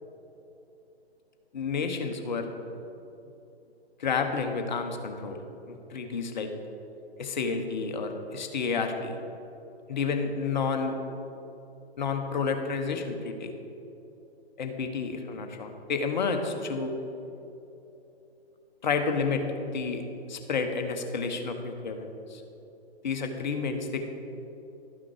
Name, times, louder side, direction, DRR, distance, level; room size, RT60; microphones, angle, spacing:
voice 1, 1.5-2.5 4.0-5.4 5.7-6.5 7.2-9.2 9.9-11.0 12.0-13.5 14.6-17.0 18.8-20.0 20.3-22.4 23.0-24.0, left 5 dB, 45° left, 5 dB, 0.9 m, -30 dB
12.0 x 6.1 x 4.6 m, 3.0 s
figure-of-eight pair, 130°, 33 cm